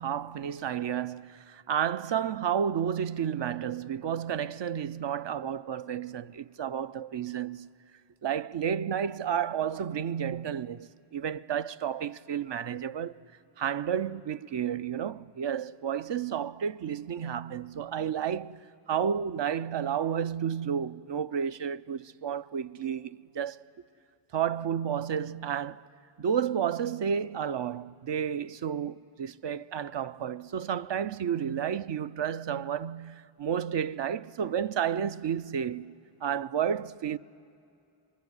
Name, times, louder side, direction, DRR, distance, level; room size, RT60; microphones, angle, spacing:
voice 1, 0.0-7.7 8.2-13.2 13.6-23.6 24.3-25.9 26.2-35.9 36.2-37.2, right 8 dB, 60° right, 0.6 m, -31 dB
24.0 x 22.0 x 9.7 m
cardioid pair, 45°, 49 cm